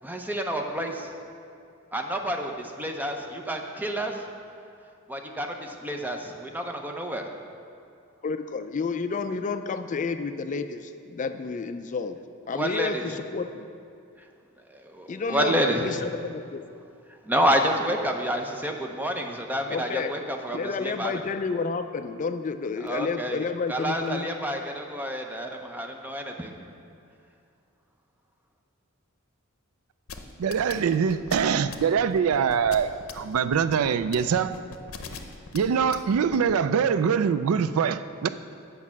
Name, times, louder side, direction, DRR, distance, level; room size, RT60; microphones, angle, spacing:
voice 1, 0.0-1.1 1.9-4.2 5.1-7.3 12.5-13.1 14.7-15.9 17.1-21.2 22.8-26.6, equal, 10° right, 3 dB, 0.6 m, -29 dB
voice 2, 8.2-12.2 12.5-13.7 15.1-16.6 19.7-20.1 20.5-24.3, left 4 dB, 35° left, 8 dB, 0.3 m, -30 dB
sound 1, 30.1-36.5, left 5 dB, 75° left, 0.7 m, -40 dB
voice 3, 30.4-34.5 35.5-38.3, right 7 dB, 85° right, 12 dB, 0.4 m, -24 dB
8.4 x 5.5 x 7.2 m, 2.4 s
head